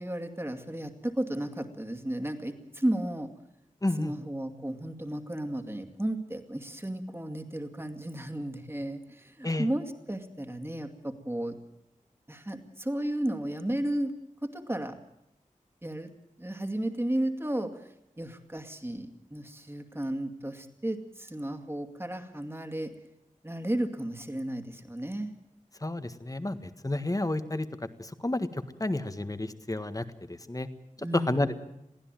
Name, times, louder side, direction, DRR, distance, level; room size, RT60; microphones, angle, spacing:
voice 1, 0.0-3.3 4.0-11.6 12.3-14.1 14.4-15.0 15.8-16.1 16.4-22.9 23.4-25.3 31.0-31.6, right 1 dB, 20° right, 6 dB, 2.4 m, -33 dB
voice 2, 3.8-4.1 9.4-9.7 25.8-27.7 28.0-30.7 31.1-31.6, left 2 dB, 25° left, 11 dB, 1.6 m, -31 dB
22.5 x 15.5 x 9.1 m, 0.82 s
wide cardioid pair, 70°, 13 cm